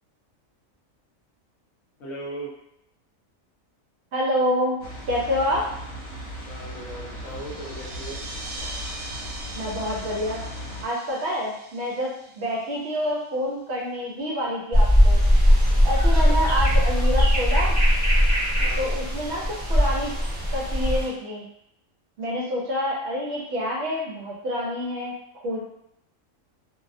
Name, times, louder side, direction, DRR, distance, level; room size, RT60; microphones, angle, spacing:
voice 1, 2.0-2.5 6.5-8.2 16.1-16.4 18.6-18.9, right 1 dB, 70° left, -3 dB, 1.0 m, -38 dB
voice 2, 4.1-4.8 5.1-5.6 9.5-10.4 10.8-15.2 15.8-17.8 18.8-20.1 20.5-21.5 22.2-25.6, equal, 65° right, -3 dB, 0.8 m, -27 dB
sound 1, 4.8-10.8, equal, 35° right, 0.9 m, -37 dB
sound 2, 7.1-13.3, right 2 dB, 90° right, 0.4 m, -41 dB
sound 3, 14.7-21.1, equal, 10° right, 0.7 m, -19 dB
2.4 x 2.0 x 2.5 m, 0.79 s
omnidirectional pair, 1.4 m